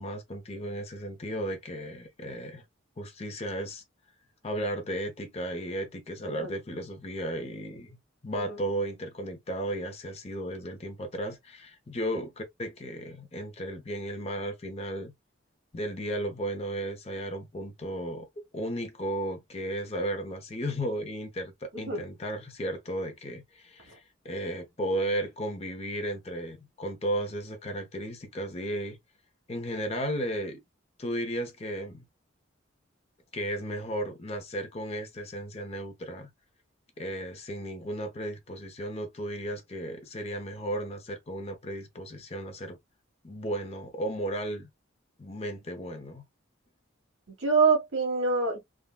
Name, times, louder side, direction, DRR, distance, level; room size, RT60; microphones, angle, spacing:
voice 1, 0.0-2.6 3.0-3.8 4.4-8.0 8.2-15.1 15.7-18.3 18.5-29.0 29.5-30.6 31.0-32.0 33.3-36.3 37.0-42.8 43.2-44.7 45.2-46.2, right 1 dB, 30° left, 0.6 m, -34 dB
voice 2, 47.4-48.6, right 4 dB, 70° right, 1.5 m, -25 dB
3.5 x 2.1 x 2.2 m
head